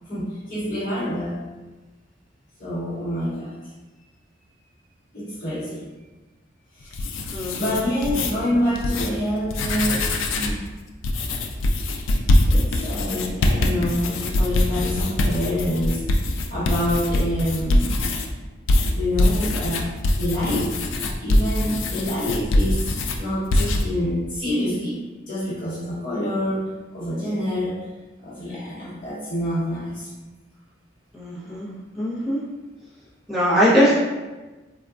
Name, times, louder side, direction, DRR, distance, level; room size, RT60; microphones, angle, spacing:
voice 1, 0.0-1.4 2.6-3.5 5.1-5.8 6.7-7.0 7.6-10.6 12.4-18.0 18.9-20.7 21.2-22.9 23.2-25.0 25.3-27.8 28.2-30.1, left 1 dB, 45° left, -11 dB, 0.9 m, -27 dB
sound 1, 6.8-8.3 8.8-9.1 9.4-10.6 11.0-18.3 18.7-23.2 23.5-23.8, left 1 dB, 80° left, 0.3 m, -22 dB
voice 2, 7.3-7.8 31.1-31.7 31.9-32.4 33.3-33.9, equal, ahead, -10 dB, 0.7 m, -21 dB
3.5 x 2.2 x 2.3 m, 1.2 s
head